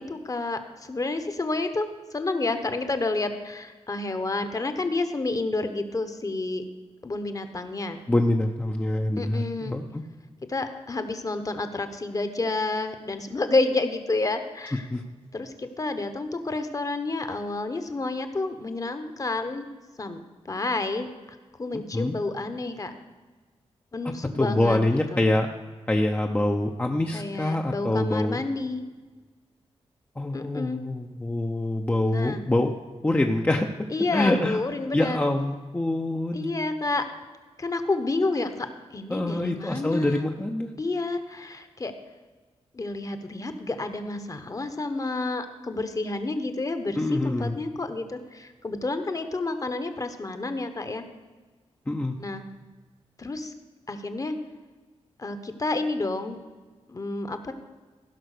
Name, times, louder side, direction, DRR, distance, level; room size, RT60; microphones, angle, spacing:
voice 1, 0.0-6.6 7.0-8.0 9.2-9.7 10.5-14.9 15.3-19.7 20.0-22.9 23.9-25.3 27.1-28.8 30.3-30.8 32.0-32.4 33.9-35.2 36.3-37.0 37.6-40.3 40.8-41.9 42.7-51.0 52.2-52.4 53.2-53.5 53.9-54.3 55.2-56.4 56.9-57.5, left 2 dB, 30° left, 8 dB, 1.0 m, -30 dB
voice 2, 8.1-10.0 14.9-15.0 21.7-22.1 24.0-25.5 25.9-28.4 30.2-32.7 33.0-34.6 34.9-36.5 39.1-40.7 47.0-47.6 51.9-52.2, left 1 dB, 15° left, 3 dB, 0.6 m, -25 dB
15.5 x 5.7 x 6.6 m, 1.3 s
wide cardioid pair, 105°, 11 cm